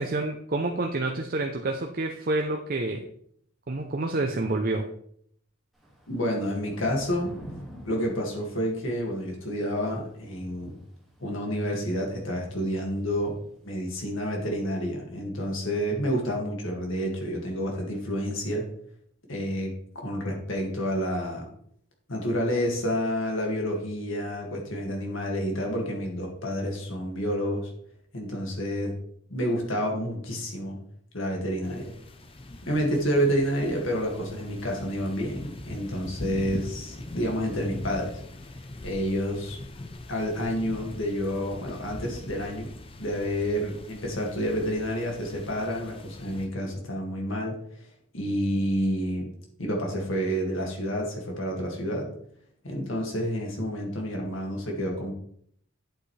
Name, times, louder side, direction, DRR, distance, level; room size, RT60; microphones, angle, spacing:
voice 1, 0.0-3.1 3.7-4.9, right 2 dB, 40° right, 3 dB, 0.6 m, -28 dB
Thunder / Rain, 5.7-14.1, equal, ahead, 2.0 m, -48 dB
voice 2, 6.1-7.3 7.8-10.8 11.2-13.4 13.6-18.6 19.3-19.7 20.0-21.5 22.1-27.7 28.1-28.9 29.3-30.8 31.1-31.9 32.6-38.2 38.8-39.6 40.1-42.7 43.0-47.5 48.1-49.3 49.6-52.1 52.6-55.1, equal, 65° left, 0 dB, 2.1 m, -29 dB
sound 1, 31.6-46.5, left 2 dB, 25° left, 0.5 m, -42 dB
8.6 x 7.9 x 3.3 m, 0.66 s
head